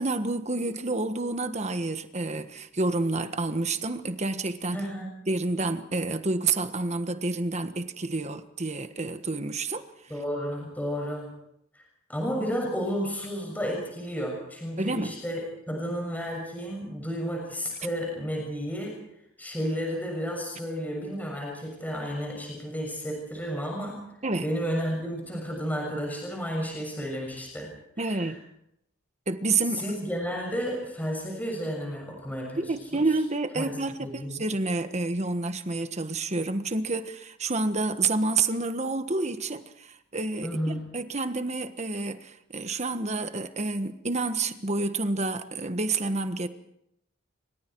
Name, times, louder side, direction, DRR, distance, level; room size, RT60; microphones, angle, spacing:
voice 1, 0.0-4.8 5.3-9.8 14.8-15.2 24.2-24.5 28.0-28.4 29.3-29.8 32.6-46.5, right 3 dB, 35° right, 1.4 m, -29 dB
voice 2, 4.7-5.1 10.1-11.3 11.7-11.8 12.1-19.0 19.4-24.0 24.4-28.3 29.7-32.7 33.6-33.7 34.0-34.4 40.4-40.9, equal, 10° left, 6.7 m, -32 dB
28.0 x 25.5 x 4.7 m
head